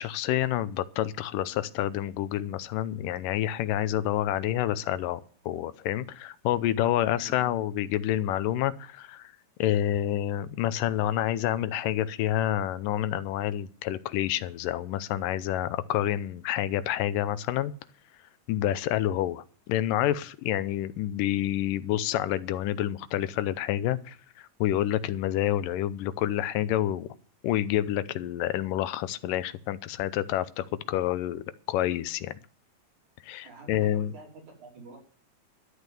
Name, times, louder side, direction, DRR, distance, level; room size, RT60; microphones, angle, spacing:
voice 1, 0.0-9.3 9.6-17.7 18.5-27.1 27.4-32.3 33.2-34.1, left 12 dB, 90° left, 15 dB, 2.4 m, -28 dB
voice 2, 33.4-35.0, right 3 dB, 65° right, 0 dB, 5.0 m, -47 dB
12.5 x 8.1 x 6.8 m, 0.44 s
omnidirectional pair, 3.8 m